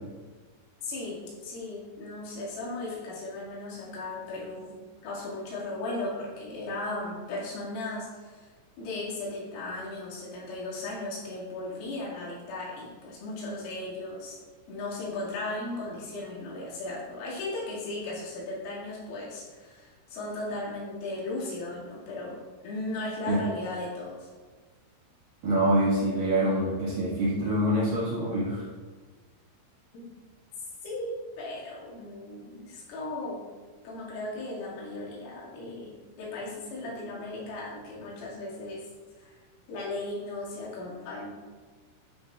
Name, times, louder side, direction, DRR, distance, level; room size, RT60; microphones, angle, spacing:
voice 1, 0.8-4.7 5.0-8.5 8.8-14.4 14.7-24.3 29.9-30.1 30.8-33.4 33.8-35.9 36.2-38.8 39.2-39.4 39.7-41.3, left 2 dB, 90° left, -6 dB, 4.9 m, -36 dB
voice 2, 25.4-28.6, right 1 dB, 60° right, -8 dB, 2.7 m, -25 dB
11.5 x 7.1 x 2.4 m, 1.4 s
omnidirectional pair, 5.7 m